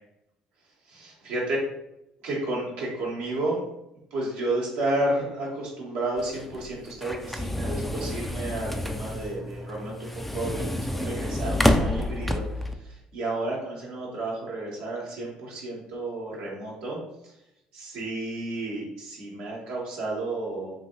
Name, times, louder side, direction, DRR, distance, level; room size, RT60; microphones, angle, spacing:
voice 1, 0.9-1.6 2.2-3.6 4.1-17.0 17.7-20.7, right 2 dB, 75° right, -5 dB, 1.0 m, -31 dB
sound 1, 6.2-12.7, left 1 dB, 5° left, 0.3 m, -28 dB
3.1 x 2.6 x 2.8 m, 0.84 s
hypercardioid pair, 60°, 3 cm